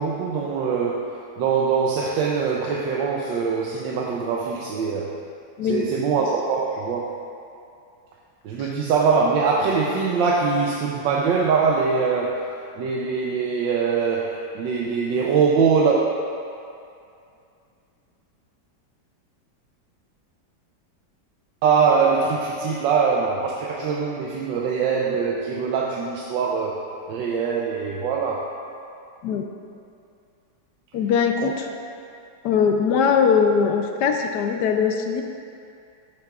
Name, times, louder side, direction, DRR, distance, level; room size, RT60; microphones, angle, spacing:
voice 1, 0.0-5.1 5.7-7.2 8.4-12.5 12.8-16.0 21.6-26.8 27.1-28.5 31.4-31.5, right 5 dB, 85° right, -2 dB, 1.4 m, -23 dB
voice 2, 30.9-31.7 32.4-35.2, left 6 dB, 70° left, 4 dB, 1.1 m, -21 dB
12.0 x 7.7 x 2.4 m, 2.5 s
omnidirectional pair, 2.0 m